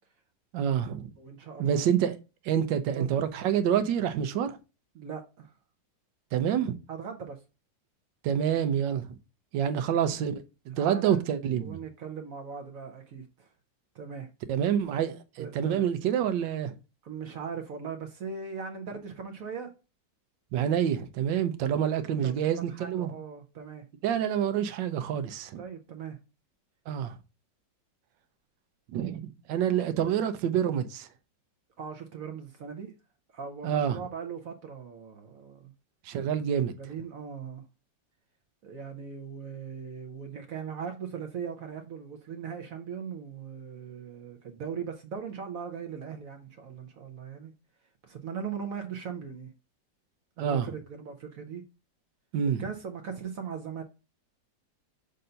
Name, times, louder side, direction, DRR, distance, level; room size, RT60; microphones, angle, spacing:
voice 1, 0.5-1.1 1.6-2.2 2.4-4.6 6.3-6.7 8.2-9.1 9.5-10.3 10.7-11.8 14.5-16.8 20.5-23.1 24.0-25.6 26.9-27.2 28.9-31.1 33.6-34.0 36.0-36.7 50.4-50.7 52.3-52.6, right 9 dB, 80° right, 1.4 m, -27 dB
voice 2, 1.2-1.9 3.0-3.1 4.9-5.5 6.9-7.4 9.6-9.8 10.7-11.2 11.6-13.5 13.9-14.3 15.4-15.8 17.0-19.7 22.1-23.9 25.6-26.2 31.8-32.9 33.3-35.7 36.8-37.6 38.6-47.5 48.0-49.5 50.4-51.6 52.6-53.8, right 6 dB, 60° right, 1.0 m, -39 dB
6.5 x 2.6 x 5.6 m
omnidirectional pair, 2.0 m